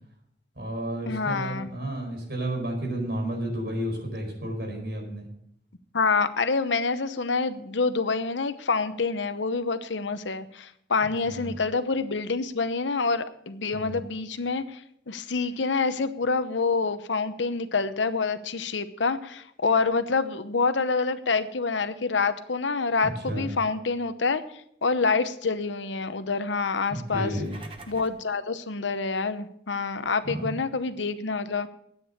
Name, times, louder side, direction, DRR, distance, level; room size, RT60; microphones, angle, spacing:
voice 1, 0.5-5.3 11.3-11.6 13.7-14.0 23.0-23.5 26.9-27.6 30.2-30.6, right 1 dB, 60° right, 1 dB, 4.8 m, -32 dB
voice 2, 1.1-1.7 5.9-24.4 24.8-27.3 27.9-31.7, left 4 dB, 90° left, 11 dB, 0.9 m, -27 dB
sound 1, 27.1-28.3, right 3 dB, 30° right, 1.0 m, -46 dB
11.0 x 9.1 x 6.6 m, 0.70 s
head